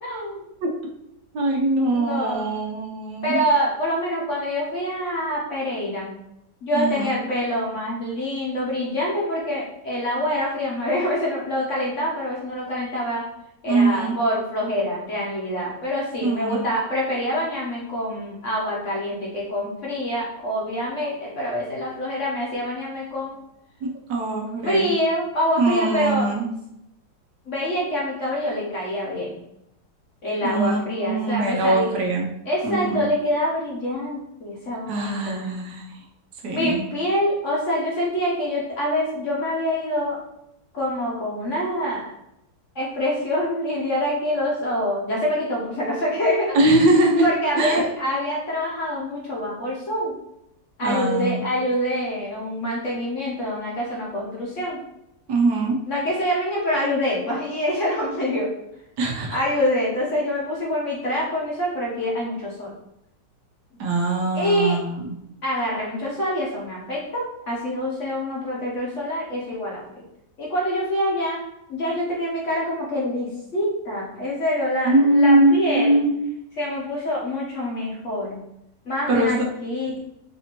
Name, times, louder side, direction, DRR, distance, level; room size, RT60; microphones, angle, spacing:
voice 1, 0.0-0.4 1.9-2.4 3.2-6.1 6.6-13.2 13.6-23.4 24.6-26.3 27.4-29.4 30.2-31.9 32.5-35.4 36.5-40.2 40.7-42.2 42.7-46.6 47.2-50.1 50.8-54.8 55.9-58.5 59.3-62.7 64.3-64.7 65.4-69.8 70.4-71.4 71.7-76.0 76.6-78.4 78.8-80.0, equal, 50° left, -4 dB, 1.0 m, -25 dB
voice 2, 1.3-3.4 6.7-7.2 13.7-14.1 16.2-16.6 23.8-25.0 25.6-26.5 30.4-32.3 32.6-33.1 34.9-36.0 36.4-36.9 46.5-47.3 47.6-47.9 50.8-51.5 55.3-55.8 59.0-59.4 63.8-65.1 74.8-76.1 79.1-79.3, right 2 dB, 70° right, 0 dB, 1.2 m, -21 dB
4.1 x 2.7 x 2.9 m, 0.81 s
omnidirectional pair, 1.9 m